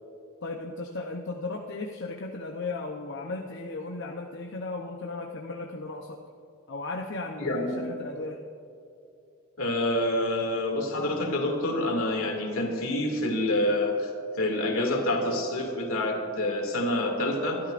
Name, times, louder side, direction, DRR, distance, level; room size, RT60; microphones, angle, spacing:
voice 1, 0.4-6.2 6.7-8.4, left 3 dB, 55° left, 1 dB, 0.8 m, -36 dB
voice 2, 7.4-7.8 9.6-14.1 14.4-17.6, left 1 dB, 75° left, 1 dB, 2.5 m, -27 dB
24.0 x 12.5 x 2.6 m, 2.6 s
head